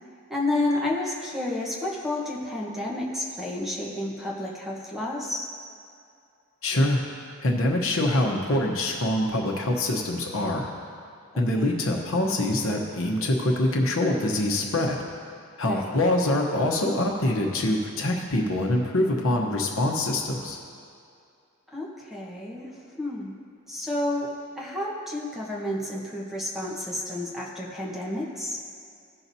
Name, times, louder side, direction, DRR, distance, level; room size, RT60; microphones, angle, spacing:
voice 1, 0.3-5.5 11.3-11.8 15.6-16.0 21.7-22.7 23.0-23.3 23.7-28.6, left 1 dB, ahead, -4 dB, 1.1 m, -31 dB
voice 2, 6.6-7.0 7.4-10.7 11.4-15.0 15.6-20.6, left 1 dB, 65° left, 1 dB, 1.0 m, -24 dB
16.0 x 5.8 x 2.7 m, 2.5 s
head